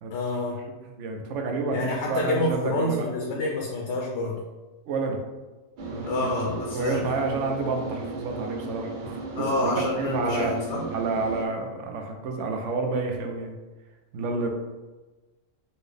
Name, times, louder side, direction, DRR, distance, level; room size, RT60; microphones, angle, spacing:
voice 1, 0.1-0.6 1.7-4.4 6.0-7.0 9.4-10.8, left 2 dB, 75° left, -1 dB, 0.9 m, -28 dB
voice 2, 0.7-3.1 4.8-5.2 5.8-6.3 6.7-10.5 10.9-13.5 14.1-14.5, right 3 dB, 75° right, 3 dB, 0.9 m, -29 dB
sound 1, 5.8-11.5, right 3 dB, 55° right, 0.5 m, -36 dB
4.4 x 2.1 x 3.2 m, 1.2 s
omnidirectional pair, 1.3 m